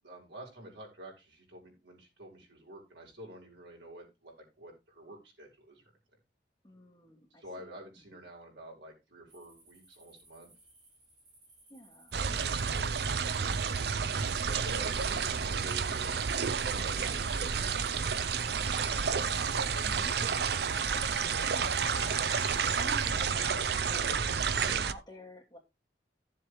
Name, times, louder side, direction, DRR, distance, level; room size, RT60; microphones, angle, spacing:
voice 1, 0.0-5.8 7.4-10.5 12.1-13.0 14.4-19.6, right 1 dB, 80° right, -1 dB, 4.6 m, -49 dB
voice 2, 6.6-7.5 8.1-8.2 11.7-13.9 19.8-20.1 21.4-24.4 24.6-25.6, left 1 dB, 20° left, -2 dB, 2.9 m, -50 dB
sound 1, 9.3-23.3, right 2 dB, 40° right, 5.7 m, -61 dB
sound 2, 12.1-24.9, right 6 dB, 60° right, 0.6 m, -30 dB
sound 3, 14.3-15.3 17.8-23.6, left 2 dB, 45° left, 2.2 m, -50 dB
14.0 x 7.5 x 3.2 m, 0.25 s
head